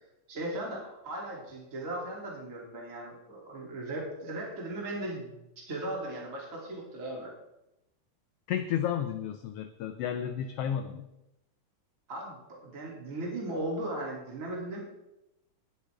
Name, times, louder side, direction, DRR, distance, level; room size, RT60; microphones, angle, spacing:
voice 1, 0.3-7.3 12.1-14.8, right 1 dB, 25° right, -3 dB, 3.0 m, -37 dB
voice 2, 8.5-11.1, left 9 dB, 75° left, 8 dB, 1.4 m, -32 dB
19.0 x 7.9 x 3.5 m, 0.90 s
omnidirectional pair, 3.3 m